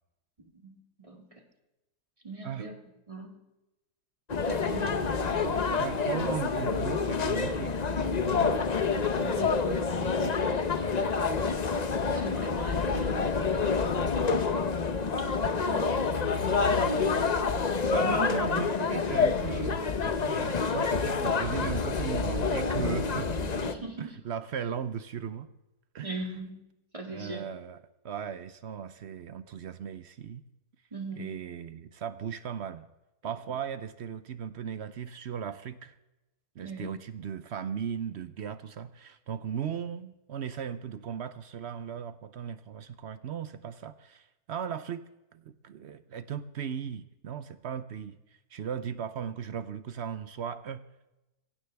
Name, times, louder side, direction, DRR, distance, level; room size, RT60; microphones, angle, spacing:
voice 1, 0.6-1.3 2.2-2.8 3.1-3.4 4.4-5.6 8.3-8.6 9.2-10.1 12.1-13.8 15.2-15.8 16.4-17.1 23.6-24.1 26.0-26.6 26.9-27.4 30.9-31.3 36.6-36.9, right 2 dB, 20° right, 2 dB, 2.0 m, -41 dB
sound 1, 4.3-23.7, left 5 dB, 40° left, 0.6 m, -28 dB
voice 2, 5.8-8.7 9.2-9.6 10.0-11.4 16.7-17.1 17.9-23.6 24.0-25.5 25.9-26.3 27.1-30.4 31.1-32.8 33.2-35.9 36.6-48.2 48.5-50.8, right 8 dB, 60° right, 13 dB, 0.7 m, -37 dB
23.5 x 16.0 x 3.4 m, 0.97 s
omnidirectional pair, 1.7 m